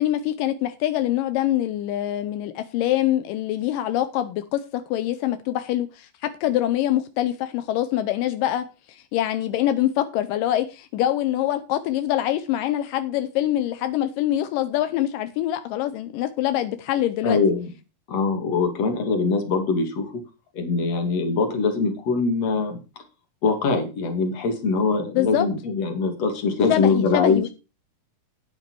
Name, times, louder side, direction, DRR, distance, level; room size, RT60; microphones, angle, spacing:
voice 1, 0.0-17.4 25.2-25.5 26.7-27.5, left 13 dB, 80° left, 2.0 m, -24 dB
voice 2, 17.2-17.7 18.1-20.2 20.5-23.0 23.4-27.4, left 4 dB, 45° left, 2.9 m, -23 dB
9.5 x 9.2 x 4.6 m
omnidirectional pair, 4.7 m